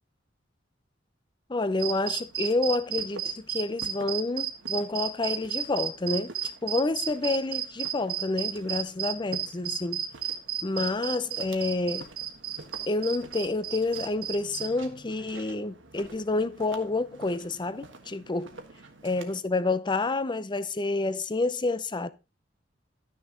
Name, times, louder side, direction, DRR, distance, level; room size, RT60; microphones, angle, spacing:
voice 1, 1.5-10.0 10.6-12.1 12.9-18.5 19.0-22.1, left 2 dB, 25° left, 0.6 m, -29 dB
Walk footsteps, 1.7-19.4, right 2 dB, 85° right, 1.5 m, -49 dB
sound 1, 1.8-14.7, right 10 dB, 55° right, 1.3 m, -32 dB
12.5 x 6.5 x 3.8 m
head